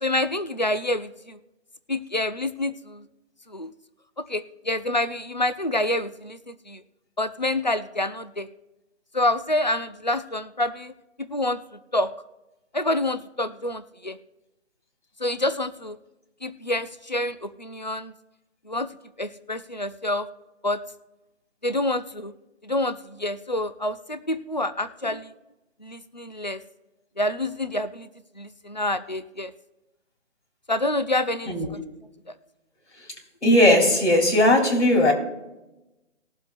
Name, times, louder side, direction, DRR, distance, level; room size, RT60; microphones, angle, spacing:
voice 1, 0.0-1.4 1.9-3.0 3.5-3.7 4.3-6.8 7.2-8.5 9.1-10.9 11.3-11.6 11.9-12.1 12.7-14.2 15.2-16.0 16.4-18.1 18.7-18.9 19.2-20.3 20.6-20.8 21.6-22.3 22.6-25.3 25.8-26.6 27.2-28.1 28.4-29.5 30.7-31.8, left 1 dB, 40° left, 13 dB, 0.4 m, -27 dB
voice 2, 33.4-35.1, left 1 dB, 65° left, 2 dB, 3.5 m, -18 dB
20.0 x 7.3 x 2.5 m, 1.0 s
hypercardioid pair, 175°, 37 cm